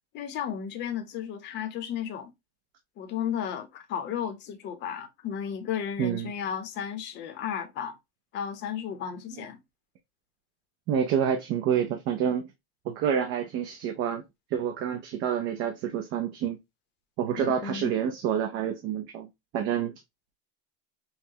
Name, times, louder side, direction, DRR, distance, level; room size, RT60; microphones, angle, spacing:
voice 1, 0.1-2.3 3.0-8.0 8.3-9.6 17.4-17.9, left 8 dB, 35° left, 0.7 m, -34 dB
voice 2, 6.0-6.3 9.4-9.5 10.9-12.5 12.8-14.2 14.5-16.6 17.2-19.3 19.5-19.9, right 8 dB, 40° right, 0.5 m, -28 dB
5.6 x 2.1 x 2.7 m
cardioid pair, 170°, 30 cm